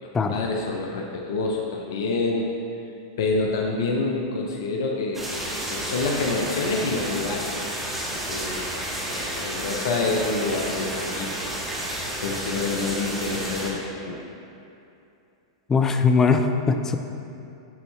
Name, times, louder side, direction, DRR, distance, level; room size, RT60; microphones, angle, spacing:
voice 1, 0.0-2.5 3.2-5.3 5.7-7.5 8.1-8.7 9.1-11.4 12.2-14.3, left 3 dB, 65° left, 0 dB, 0.7 m, -27 dB
sound 1, 5.1-13.7, right 1 dB, 10° right, 1.6 m, -31 dB
voice 2, 15.7-17.0, left 4 dB, 20° left, 7 dB, 0.5 m, -20 dB
11.5 x 4.2 x 3.4 m, 2.7 s
hypercardioid pair, 100°, 2 cm